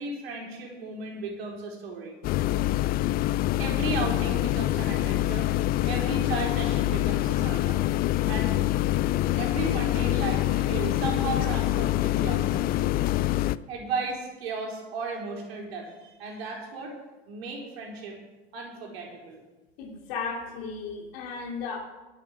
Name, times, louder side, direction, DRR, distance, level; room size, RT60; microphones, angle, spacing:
voice 1, 0.0-2.2 3.6-5.5 5.8-7.8 8.3-8.6 9.3-12.7 13.7-16.9 17.3-18.2 18.5-19.4, right 3 dB, 70° right, 0 dB, 4.3 m, -35 dB
sound 1, 2.2-13.6, left 15 dB, 30° left, 0.4 m, -25 dB
voice 2, 19.8-21.8, left 5 dB, 60° left, 0 dB, 3.4 m, -35 dB
11.5 x 10.5 x 6.4 m, 1.1 s
hypercardioid pair, 85°, 32 cm